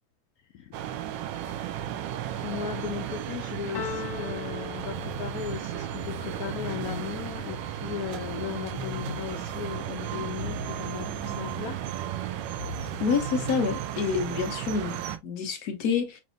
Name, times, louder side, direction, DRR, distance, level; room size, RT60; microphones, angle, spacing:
voice 1, 0.5-1.0 2.4-11.8, left 9 dB, 75° left, 0.8 m, -37 dB
sound 1, 0.7-15.2, right 11 dB, 75° right, 1.2 m, -34 dB
sound 2, 3.7-5.7, left 7 dB, 30° left, 1.2 m, -38 dB
sound 3, 4.9-13.7, left 5 dB, 50° right, 1.5 m, -42 dB
voice 2, 13.0-16.2, left 6 dB, 60° left, 1.2 m, -28 dB
6.0 x 2.6 x 2.5 m
omnidirectional pair, 2.1 m